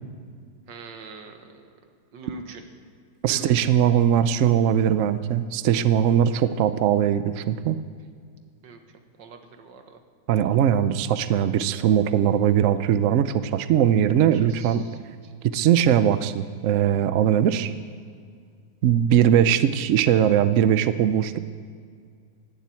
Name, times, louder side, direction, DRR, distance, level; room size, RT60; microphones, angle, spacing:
voice 1, 0.7-1.7 2.1-2.6 3.3-3.7 8.6-8.8 9.2-10.0 14.3-15.4, right 3 dB, 65° right, 6 dB, 1.9 m, -43 dB
voice 2, 3.2-7.8 10.3-14.8 15.5-17.7 18.8-21.4, right 9 dB, 90° right, 12 dB, 0.6 m, -20 dB
19.0 x 7.5 x 8.4 m, 2.1 s
omnidirectional pair, 2.1 m